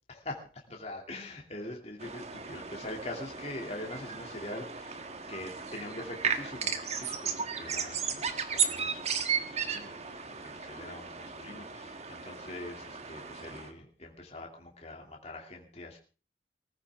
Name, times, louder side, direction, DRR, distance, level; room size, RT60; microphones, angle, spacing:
voice 1, 0.1-16.0, left 1 dB, 35° left, 1 dB, 2.6 m, -43 dB
sound 1, 2.0-13.7, right 7 dB, 35° right, 1.5 m, -35 dB
22.0 x 14.5 x 3.6 m, 0.36 s
head